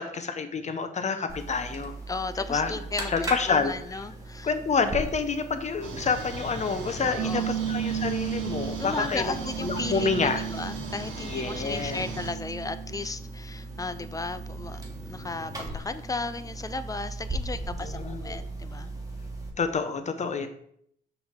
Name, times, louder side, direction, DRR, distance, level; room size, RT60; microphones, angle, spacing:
voice 1, 0.0-1.9 2.5-2.7 3.1-3.7 4.4-10.4 11.2-12.0 17.8-18.4 19.6-20.5, left 5 dB, 35° left, 9 dB, 0.9 m, -28 dB
sound 1, 1.3-19.5, right 2 dB, 15° right, 1.4 m, -39 dB
voice 2, 2.1-3.1 3.5-4.5 7.0-7.5 8.8-18.9, left 3 dB, 15° left, 12 dB, 0.4 m, -35 dB
sound 2, 5.8-12.3, right 2 dB, 75° right, 1.5 m, -38 dB
sound 3, 7.2-13.2 13.7-15.0, right 9 dB, 55° right, 0.6 m, -35 dB
5.8 x 5.6 x 3.7 m, 0.69 s
cardioid pair, 90°, 20 cm